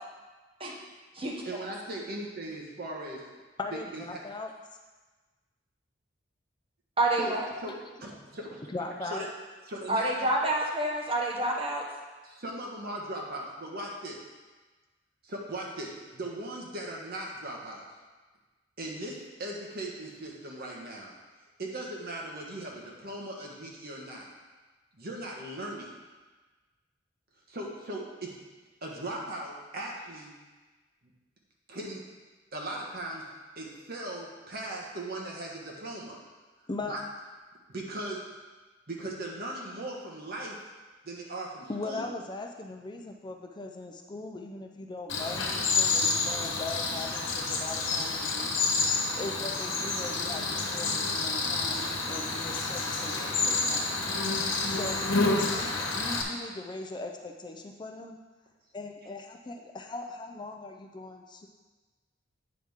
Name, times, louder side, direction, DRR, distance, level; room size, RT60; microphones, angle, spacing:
voice 1, 1.4-3.2 3.7-4.2 7.2-7.3 7.6-7.7 8.0-8.6 9.0-9.3 9.7-10.1 12.2-14.2 15.2-17.8 18.8-21.1 21.6-24.3 24.9-25.9 27.5-28.4 28.8-30.3 31.0-31.1 31.7-32.0 32.5-33.3 33.5-36.2 36.8-37.0 37.7-38.2 38.9-40.6 41.0-42.1, right 1 dB, 55° right, -1 dB, 1.4 m, -38 dB
voice 2, 3.6-4.5 8.7-9.3 36.7-36.9 41.7-48.5 48.9-53.9 54.7-58.2 58.7-61.5, left 2 dB, 25° left, 3 dB, 0.4 m, -40 dB
voice 3, 7.0-7.5 9.9-11.8, right 1 dB, 30° right, -2 dB, 1.3 m, -28 dB
Cricket, 45.1-56.2, left 3 dB, 80° left, 1.1 m, -29 dB
8.6 x 5.8 x 3.6 m, 1.3 s
head